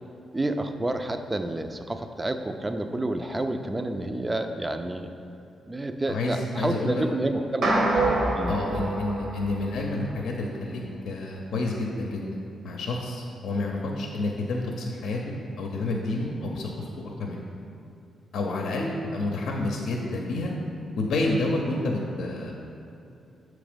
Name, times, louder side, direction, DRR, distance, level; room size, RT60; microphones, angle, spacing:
voice 1, 0.3-5.1 5.7-7.9 8.3-8.6, right 1 dB, 20° right, 7 dB, 0.4 m, -29 dB
voice 2, 6.1-7.0 8.5-12.4 12.6-17.4 18.3-20.5 21.0-22.6, left 2 dB, 80° left, 0 dB, 0.6 m, -29 dB
sound 1, 7.6-10.1, right 2 dB, 65° right, 1.0 m, -26 dB
7.1 x 3.1 x 5.1 m, 2.7 s
cardioid pair, 70°, 0 cm